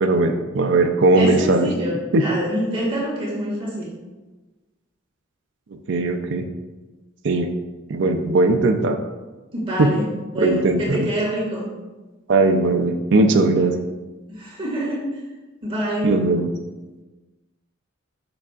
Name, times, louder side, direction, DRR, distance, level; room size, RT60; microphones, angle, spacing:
voice 1, 0.0-1.7 2.1-2.2 5.9-6.4 7.2-7.5 7.9-9.0 9.8-9.9 10.4-11.1 12.3-13.7 16.0-16.5, right 2 dB, 65° right, 5 dB, 0.5 m, -18 dB
voice 2, 1.1-3.9 9.5-10.1 10.3-11.7 14.3-15.2 15.6-16.2, equal, 30° right, -6 dB, 2.0 m, -26 dB
6.9 x 6.0 x 2.4 m, 1.2 s
head